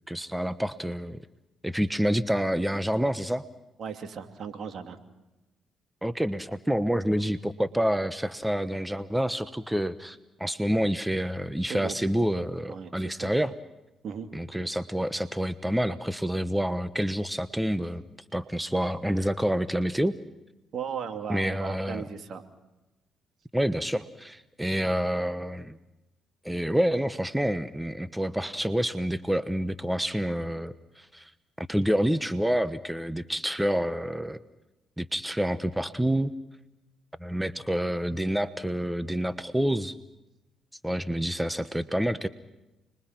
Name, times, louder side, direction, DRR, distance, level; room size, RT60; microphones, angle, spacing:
voice 1, 0.1-1.2 1.6-3.4 6.0-13.5 14.3-18.0 18.3-20.2 21.3-22.0 23.5-25.8 26.4-31.3 31.6-34.4 35.0-36.3 37.2-39.9 40.8-42.3, equal, 5° right, 13 dB, 1.1 m, -28 dB
voice 2, 3.8-5.0 11.7-12.0 12.7-13.3 14.0-14.3 20.7-22.4, right 7 dB, 60° right, 7 dB, 2.7 m, -36 dB
29.5 x 22.5 x 6.0 m, 1.0 s
supercardioid pair, 60°, 0 cm